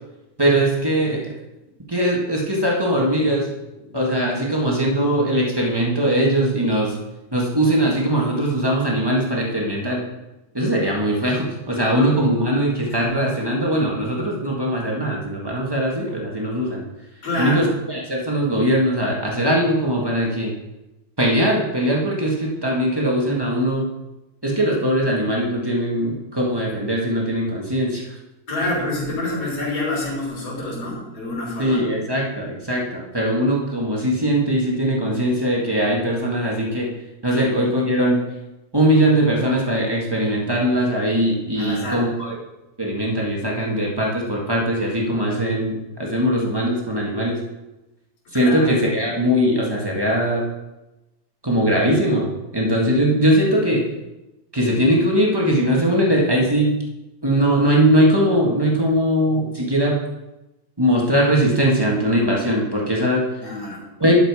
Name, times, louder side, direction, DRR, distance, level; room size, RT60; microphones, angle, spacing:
voice 1, 0.4-1.3 1.9-3.5 3.9-6.9 7.3-10.0 10.5-16.8 17.4-20.5 21.2-23.9 24.4-28.0 28.6-28.7 31.6-36.9 37.2-38.2 38.7-42.3 42.8-47.4 48.3-50.4 51.4-52.3 52.5-53.8 54.5-56.7 57.2-60.0 60.8-63.2 64.0-64.2, right 1 dB, 25° right, -3 dB, 0.5 m, -20 dB
voice 2, 17.2-17.6 28.5-31.9 37.3-37.8 41.6-42.1 48.3-48.7 63.4-63.8, left 2 dB, 55° left, -4 dB, 4.5 m, -28 dB
11.5 x 6.5 x 4.9 m, 1.0 s
omnidirectional pair, 3.3 m